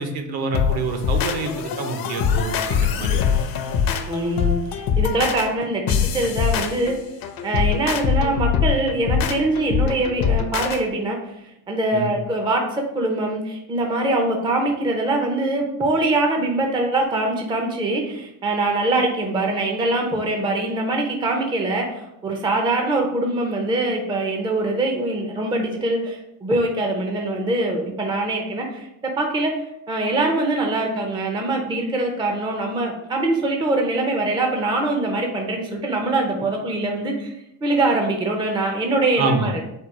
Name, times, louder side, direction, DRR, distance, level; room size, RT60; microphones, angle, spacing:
voice 1, 0.0-3.2 11.9-12.1 39.2-39.5, right 4 dB, 55° right, 5 dB, 0.8 m, -27 dB
sound 1, 0.5-10.8, left 7 dB, 50° left, 0.6 m, -23 dB
voice 2, 4.1-6.9 7.4-11.4 11.7-28.9 29.2-37.4 37.6-39.5, right 2 dB, 10° right, 2 dB, 0.5 m, -23 dB
4.4 x 2.3 x 4.6 m, 0.85 s
cardioid pair, 125°, 46 cm